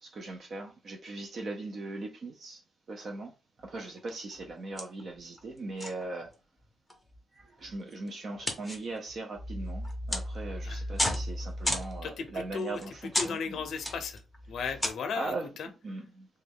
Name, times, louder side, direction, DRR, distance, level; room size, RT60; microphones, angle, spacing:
voice 1, 0.0-2.6 2.9-3.3 3.6-6.3 7.3-13.6 15.2-15.5 15.8-16.3, right 2 dB, 45° right, 0.4 m, -39 dB
sound 1, 3.6-4.0 4.3-4.5 4.8-5.5 5.8-6.3 6.9-14.9, left 1 dB, 5° left, 0.6 m, -35 dB
voice 2, 12.0-14.2 14.5-15.7, left 5 dB, 60° left, 0.5 m, -36 dB
3.1 x 2.2 x 3.4 m
cardioid pair, 155°, 0 cm